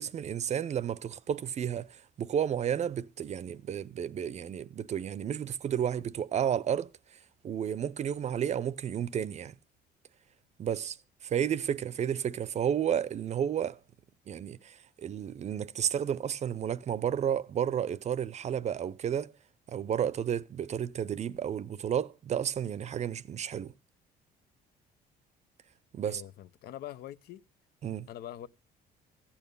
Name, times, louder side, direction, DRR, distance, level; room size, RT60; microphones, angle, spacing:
voice 1, 0.0-9.5 10.6-11.0 11.2-13.8 14.3-19.3 19.7-23.7 25.9-26.2 27.8-28.1, right 9 dB, 40° right, 0.6 m, -32 dB
voice 2, 26.0-27.4 28.1-28.5, left 12 dB, 65° left, 0.7 m, -43 dB
14.5 x 8.7 x 5.3 m
cardioid pair, 110°, 17 cm